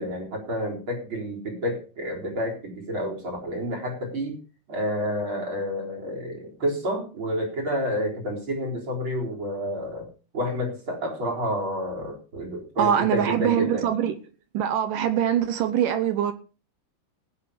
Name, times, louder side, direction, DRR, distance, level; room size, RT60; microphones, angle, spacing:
voice 1, 0.0-4.4 4.7-10.1 10.3-13.9, equal, 30° right, 4.5 m, -29 dB
voice 2, 12.8-14.2 14.5-16.3, right 9 dB, 70° right, 2.2 m, -23 dB
17.5 x 8.0 x 5.0 m
omnidirectional pair, 4.5 m